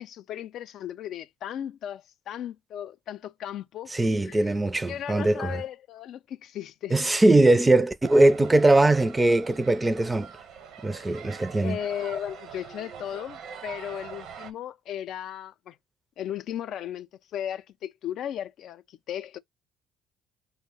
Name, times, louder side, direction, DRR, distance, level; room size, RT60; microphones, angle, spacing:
voice 1, 0.0-4.0 4.2-4.6 4.9-7.0 11.6-15.8 16.2-19.4, left 10 dB, 65° left, 0.4 m, -36 dB
voice 2, 3.9-5.6 6.9-10.3 10.8-11.8, right 2 dB, 15° right, 0.5 m, -21 dB
sound 1, 8.0-14.5, right 7 dB, 70° right, 0.9 m, -43 dB
5.2 x 2.1 x 3.7 m
supercardioid pair, 85°, 0 cm